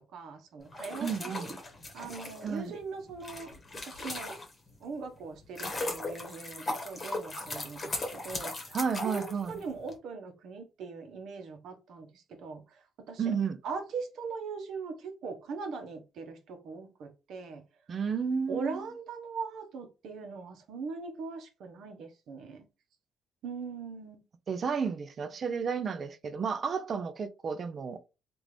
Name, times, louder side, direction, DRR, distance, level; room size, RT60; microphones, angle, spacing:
voice 1, 0.1-1.4 1.9-3.5 3.8-4.3 4.8-8.8 9.0-13.2 13.6-17.6 18.5-22.6 23.4-24.2, right 4 dB, 70° right, 0.9 m, -40 dB
sound 1, 0.6-4.8 5.2-9.9, left 2 dB, 25° left, 1.1 m, -38 dB
voice 2, 1.0-1.5 2.4-2.7 8.7-9.6 13.2-13.6 17.9-18.9 24.5-28.1, right 6 dB, 45° right, 0.5 m, -32 dB
3.5 x 2.5 x 3.1 m
cardioid pair, 115°, 0 cm